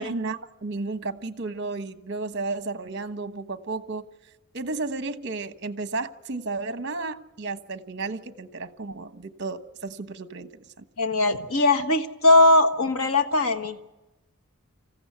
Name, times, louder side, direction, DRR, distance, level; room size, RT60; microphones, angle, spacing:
voice 1, 0.0-4.0 4.5-10.8, right 3 dB, 50° right, 1.2 m, -33 dB
voice 2, 11.0-13.8, left 2 dB, 75° left, 1.3 m, -20 dB
26.0 x 15.5 x 8.1 m
head